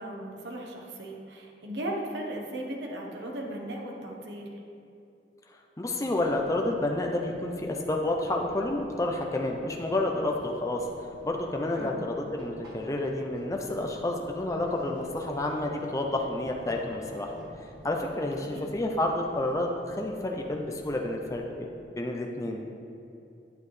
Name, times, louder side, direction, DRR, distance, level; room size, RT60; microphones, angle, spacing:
voice 1, 0.0-4.6 11.8-12.0 18.4-18.7, right 1 dB, 80° right, 0 dB, 1.1 m, -37 dB
voice 2, 5.8-17.3 17.8-21.7 22.0-22.6, left 2 dB, 20° left, 1 dB, 0.4 m, -30 dB
Fixed-wing aircraft airplane, 6.0-21.4, equal, 60° right, 1.7 m, -49 dB
8.8 x 7.3 x 3.2 m, 2.7 s
head